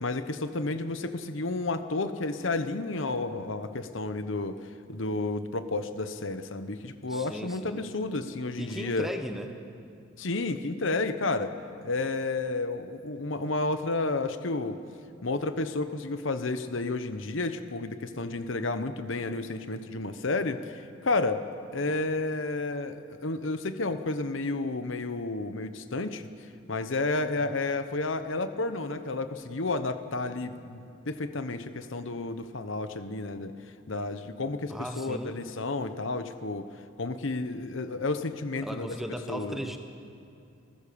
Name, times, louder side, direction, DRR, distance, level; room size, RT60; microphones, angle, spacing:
voice 1, 0.0-4.6 4.9-9.1 10.2-11.6 11.8-14.8 15.2-21.4 21.7-26.3 26.7-33.5 33.9-36.7 37.0-39.0 39.3-39.7, left 3 dB, 70° left, 10 dB, 1.0 m, -31 dB
voice 2, 7.1-7.8 8.6-9.5 34.7-35.4 38.6-39.8, equal, ahead, 5 dB, 1.2 m, -36 dB
28.0 x 15.0 x 7.0 m, 2.5 s
head